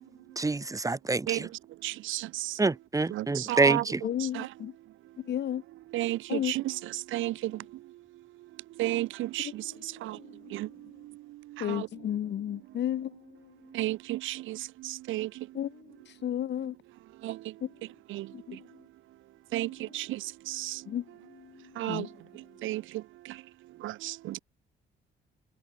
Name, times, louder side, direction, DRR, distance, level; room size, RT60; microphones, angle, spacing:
voice 1, 0.4-1.5 2.6-4.0, right 3 dB, 15° right, 0.8 m, -27 dB
voice 2, 1.8-2.6 3.1-4.5 5.9-7.6 8.8-9.6 10.0-10.2 10.5-10.7 11.6-11.9 13.7-15.3 17.2-17.4 18.1-18.3 19.5-20.8 21.8-22.1 22.6-22.8 23.8-24.4, right 16 dB, 80° right, 0.5 m, -33 dB
voice 3, 4.0-4.7 5.2-5.6 6.3-6.5 9.4-10.7 11.6-13.7 15.5-16.7 17.6-17.7 18.3-18.7 20.9-22.1, left 10 dB, 60° left, 1.2 m, -34 dB
cardioid pair, 90°, 20 cm